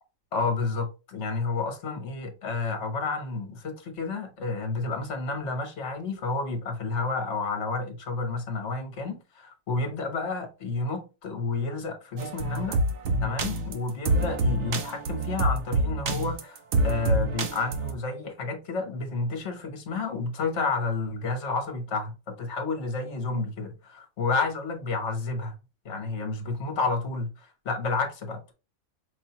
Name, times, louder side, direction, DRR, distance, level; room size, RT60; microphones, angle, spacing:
voice 1, 0.3-12.8 13.2-16.6 16.8-25.5 25.8-27.3 27.6-28.5, left 3 dB, 60° left, 1.3 m, -30 dB
sound 1, 12.2-17.9, right 1 dB, 65° right, 0.9 m, -26 dB
5.1 x 2.7 x 2.8 m
omnidirectional pair, 1.4 m